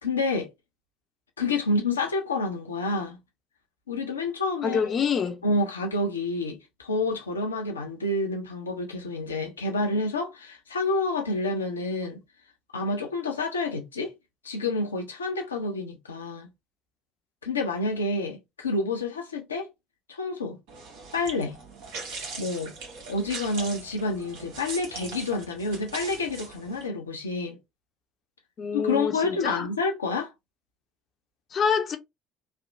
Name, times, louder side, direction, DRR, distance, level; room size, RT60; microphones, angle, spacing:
voice 1, 0.0-0.5 1.4-3.2 3.9-4.8 5.4-12.2 12.7-14.1 14.4-16.5 17.4-19.7 20.1-20.6 21.1-21.6 22.4-22.7 23.1-27.6 28.7-30.3, left 2 dB, 90° left, 0.5 m, -28 dB
voice 2, 4.6-5.4 28.6-29.7 31.5-32.0, left 6 dB, 45° left, 0.5 m, -26 dB
sound 1, 20.7-26.9, right 4 dB, 70° right, 1.0 m, -40 dB
3.2 x 2.0 x 2.5 m
hypercardioid pair, 60°, 0 cm